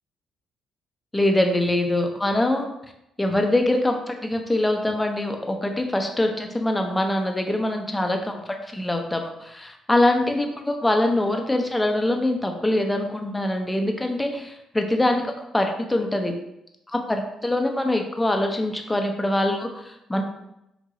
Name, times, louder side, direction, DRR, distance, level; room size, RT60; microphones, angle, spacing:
voice 1, 1.1-2.6 3.2-16.3 16.9-20.2, left 1 dB, 15° left, 4 dB, 0.7 m, -24 dB
4.5 x 3.0 x 2.7 m, 0.84 s
supercardioid pair, 55°, 0 cm